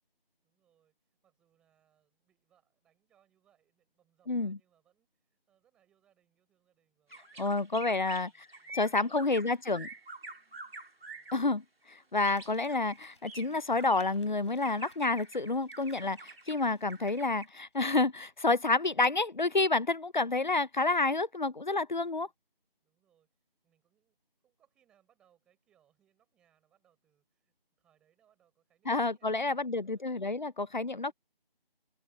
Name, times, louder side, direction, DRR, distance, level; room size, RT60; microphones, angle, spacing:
voice 1, 0.4-9.9 11.0-11.3 22.2-22.3 22.8-23.3 23.6-24.2 24.4-31.1, right 10 dB, 5° right, 5.7 m, -73 dB
voice 2, 4.3-4.6 7.4-8.3 8.7-9.9 11.3-22.3 28.9-31.1, left 3 dB, 50° left, 0.6 m, -29 dB
sound 1, 7.1-11.4 12.2-14.3 14.6-17.5, right 2 dB, 80° right, 3.7 m, -48 dB
Crumpling crinkling, 12.2-17.9 18.2-18.3, left 4 dB, 30° left, 4.7 m, -64 dB
open air
figure-of-eight pair, 175°, 30 cm